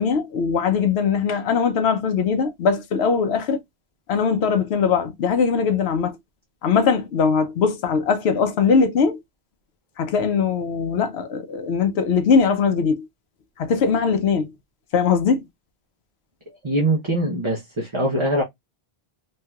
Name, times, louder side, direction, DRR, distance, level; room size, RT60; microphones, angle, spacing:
voice 1, 0.0-3.6 4.1-6.2 6.6-9.2 10.0-13.1 13.6-14.5 14.9-15.4, left 6 dB, 85° left, 0.9 m, -20 dB
voice 2, 16.6-18.4, right 1 dB, 30° right, 0.7 m, -22 dB
3.2 x 2.7 x 2.2 m
omnidirectional pair, 1.1 m